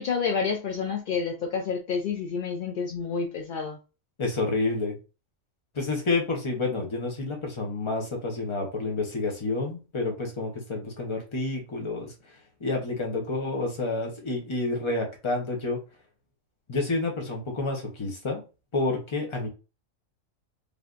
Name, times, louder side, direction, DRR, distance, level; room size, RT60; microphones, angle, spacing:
voice 1, 0.0-3.8, left 5 dB, 75° left, 0.4 m, -29 dB
voice 2, 4.2-5.0 5.7-12.1 12.6-15.8 16.7-18.4 18.7-19.5, left 3 dB, 30° left, 0.6 m, -29 dB
3.4 x 2.7 x 2.4 m
omnidirectional pair, 1.4 m